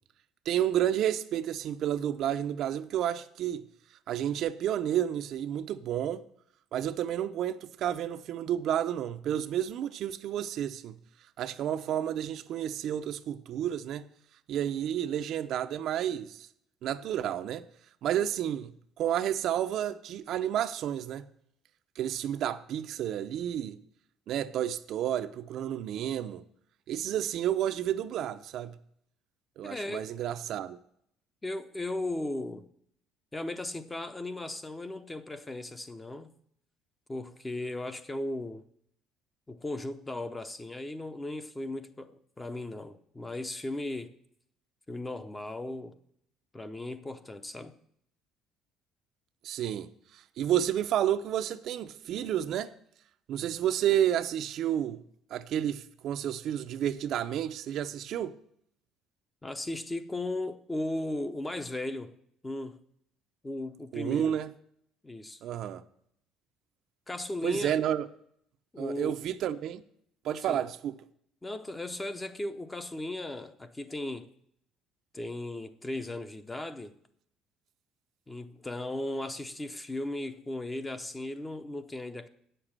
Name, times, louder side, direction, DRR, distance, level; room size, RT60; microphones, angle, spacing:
voice 1, 0.5-3.6 4.1-6.2 6.7-10.9 11.4-14.0 14.5-16.5 16.8-17.6 18.0-18.7 19.0-21.3 22.0-23.8 24.3-26.4 26.9-28.7 29.6-30.8 49.4-52.7 53.3-55.0 55.3-58.4 63.9-64.5 65.4-65.8 67.4-68.1 68.8-69.8 70.2-70.9, right 10 dB, 55° right, 0.5 m, -31 dB
voice 2, 29.6-30.1 31.4-32.7 33.3-36.3 37.1-38.6 39.5-44.1 44.9-46.0 46.5-47.7 59.4-62.1 62.4-62.8 63.4-64.4 65.0-65.4 67.1-67.8 68.7-69.2 70.5-70.6 71.4-74.3 75.1-76.9 78.3-82.3, left 1 dB, 15° left, 0.7 m, -36 dB
8.8 x 6.8 x 7.3 m
cardioid pair, 135°, 0 cm